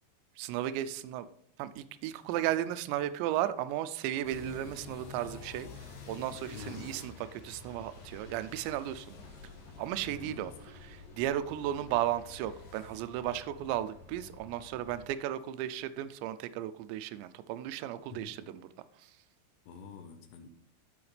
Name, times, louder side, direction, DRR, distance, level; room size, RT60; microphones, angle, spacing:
voice 1, 0.4-1.3 1.6-5.7 6.1-9.2 9.8-18.7 19.0-19.1, right 12 dB, 85° right, 13 dB, 2.7 m, -35 dB
sound 1, 4.2-15.1, left 4 dB, 55° left, 2.3 m, -49 dB
voice 2, 6.5-7.0 10.1-10.6 18.1-18.4 19.7-20.5, left 6 dB, 75° left, 7 dB, 2.7 m, -48 dB
14.0 x 5.8 x 3.3 m, 0.70 s
omnidirectional pair, 5.4 m